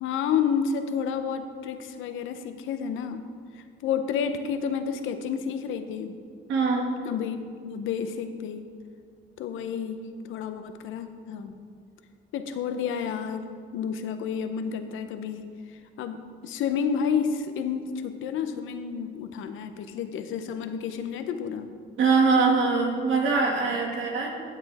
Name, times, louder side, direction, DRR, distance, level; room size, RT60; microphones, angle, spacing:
voice 1, 0.0-3.2 3.5-6.1 7.0-8.6 9.4-11.5 12.3-21.7, left 7 dB, 85° left, 8 dB, 0.8 m, -30 dB
voice 2, 6.5-6.9 22.0-24.3, right 4 dB, 80° right, 0 dB, 2.1 m, -22 dB
15.5 x 7.7 x 3.5 m, 2.1 s
cardioid pair, 90°, 20 cm